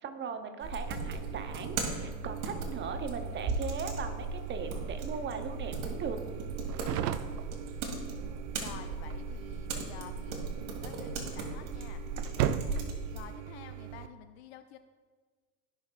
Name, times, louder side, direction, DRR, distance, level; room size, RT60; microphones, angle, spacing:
voice 1, 0.0-6.2, right 5 dB, 25° right, 8 dB, 0.7 m, -39 dB
sound 1, 0.6-13.3, right 3 dB, 40° right, 2.0 m, -37 dB
sound 2, 0.9-14.1, right 10 dB, 70° right, 0.6 m, -39 dB
voice 2, 8.6-10.4 10.8-12.0 13.1-14.8, left 10 dB, 40° left, 9 dB, 0.4 m, -49 dB
16.5 x 5.7 x 2.4 m, 1.5 s
figure-of-eight pair, 85°, 50 cm